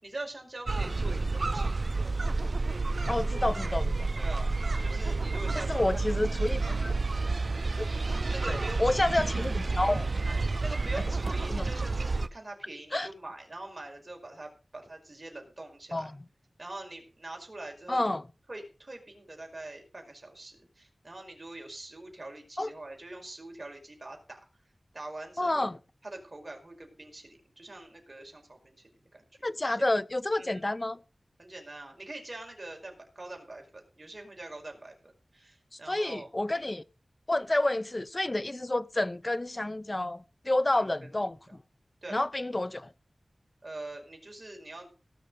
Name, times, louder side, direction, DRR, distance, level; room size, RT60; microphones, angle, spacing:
voice 1, 0.0-2.1 4.2-6.0 8.0-9.3 10.2-16.1 16.6-18.1 18.5-24.4 24.9-25.7 26.0-29.9 30.4-30.6 31.4-36.3 36.6-36.8 40.7-41.1 41.5-41.6 42.0-42.2 43.6-44.9, right 2 dB, 45° right, 5.1 m, -44 dB
sound 1, 0.7-12.3, right 3 dB, 65° right, 0.7 m, -30 dB
voice 2, 3.1-4.1 5.5-6.9 7.8-7.9 8.5-10.1 11.5-11.7 12.9-13.1 15.9-16.2 17.9-18.2 22.6-22.7 25.4-25.8 29.4-31.0 35.9-36.8 37.3-41.4 42.1-42.9, left 1 dB, 35° left, 0.7 m, -29 dB
18.5 x 6.6 x 5.3 m
wide cardioid pair, 55°, 0 cm